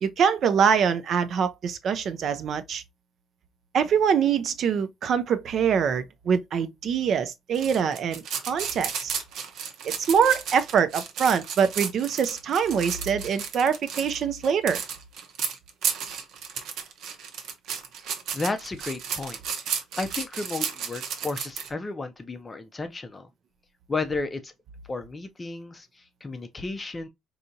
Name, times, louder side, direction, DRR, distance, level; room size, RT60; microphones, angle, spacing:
voice 1, 0.0-2.8 3.7-9.1 9.8-14.8, right 7 dB, 45° right, 0.4 m, -24 dB
sound 1, 7.5-21.7, right 7 dB, 65° right, 0.8 m, -33 dB
voice 2, 18.3-19.4 20.0-23.3 23.9-24.5 24.9-27.1, left 3 dB, 15° left, 0.5 m, -33 dB
4.6 x 2.8 x 2.6 m
cardioid pair, 160°, 0 cm